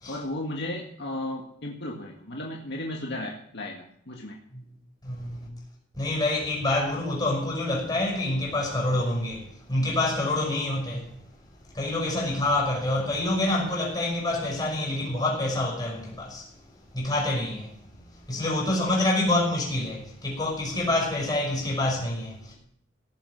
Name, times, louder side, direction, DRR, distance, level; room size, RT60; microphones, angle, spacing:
voice 1, 0.1-4.4, left 1 dB, 55° left, 1.9 m, -34 dB
voice 2, 5.0-5.5 6.0-11.1 11.7-16.5 16.9-17.7 18.3-22.5, left 2 dB, 20° left, 5.9 m, -27 dB
18.0 x 7.7 x 7.2 m
head